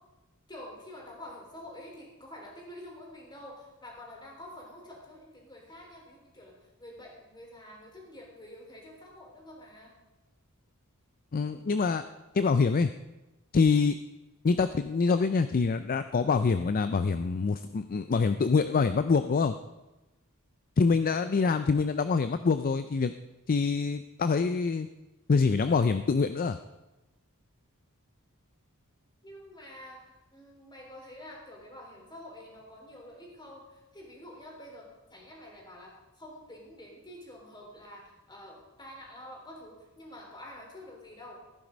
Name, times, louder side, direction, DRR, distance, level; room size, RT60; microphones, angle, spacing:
voice 1, 0.5-10.0 29.2-41.4, left 1 dB, 20° left, 0 dB, 3.5 m, -48 dB
voice 2, 11.3-12.0 12.3-12.9 13.5-14.0 14.4-19.6 20.8-23.1 23.5-24.9 25.3-26.6, left 4 dB, 40° left, 11 dB, 0.4 m, -25 dB
14.5 x 10.5 x 5.1 m, 1.0 s
head